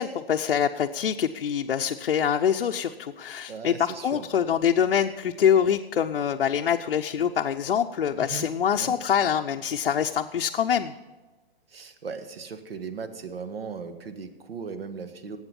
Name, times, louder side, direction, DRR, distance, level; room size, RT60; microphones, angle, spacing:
voice 1, 0.0-10.9, left 8 dB, 80° left, 3 dB, 0.7 m, -25 dB
voice 2, 3.5-4.3 8.2-8.5 8.8-8.9 11.7-15.4, right 5 dB, 75° right, 9 dB, 1.7 m, -37 dB
18.5 x 8.1 x 5.4 m, 1.3 s
hypercardioid pair, 145°, 30 cm